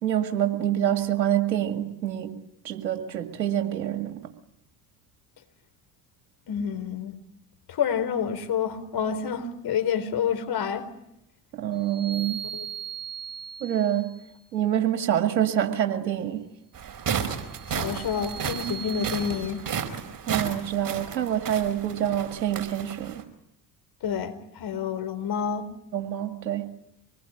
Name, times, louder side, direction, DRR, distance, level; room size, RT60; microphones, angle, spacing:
voice 1, 0.0-2.4 2.6-4.2 11.5-12.4 13.6-14.2 14.5-16.5 20.3-23.2 25.9-26.7, right 11 dB, 90° right, 2.2 m, -26 dB
voice 2, 6.5-7.2 7.7-10.8 12.5-12.7 17.7-19.6 24.0-25.7, left 7 dB, 50° left, 4.6 m, -28 dB
sound 1, 11.8-14.3 17.3-19.4, right 7 dB, 20° left, 6.2 m, -39 dB
sound 2, 16.7-23.2, right 7 dB, 40° right, 4.5 m, -33 dB
25.5 x 20.5 x 9.9 m
hypercardioid pair, 65°, 49 cm